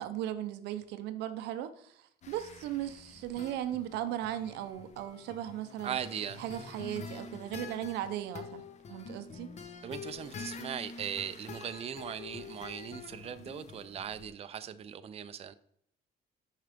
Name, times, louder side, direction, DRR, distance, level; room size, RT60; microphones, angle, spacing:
voice 1, 0.0-2.0 2.3-6.0 6.4-8.6 8.9-9.5, right 12 dB, 85° right, 0.7 m, -37 dB
sound 1, 2.2-14.3, left 4 dB, 45° left, 0.8 m, -47 dB
voice 2, 5.8-6.4 9.8-15.5, right 8 dB, 35° right, 0.5 m, -39 dB
6.5 x 4.8 x 3.5 m
cardioid pair, 110°, 17 cm